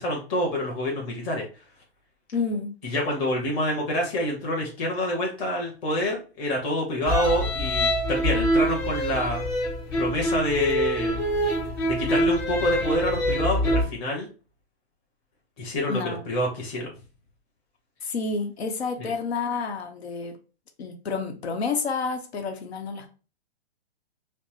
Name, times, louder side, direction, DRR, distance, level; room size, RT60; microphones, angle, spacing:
voice 1, 0.0-1.4 2.8-9.4 10.0-11.2 11.8-14.3 15.6-16.9 19.0-19.1, left 1 dB, 25° left, -2 dB, 1.2 m, -27 dB
voice 2, 2.3-2.7 15.9-16.2 18.0-20.4 20.8-23.1, left 4 dB, 85° left, 4 dB, 1.0 m, -29 dB
sound 1, 7.1-13.8, equal, 50° left, 1.9 m, -25 dB
5.2 x 2.1 x 3.1 m, 0.34 s
hypercardioid pair, 165°, 31 cm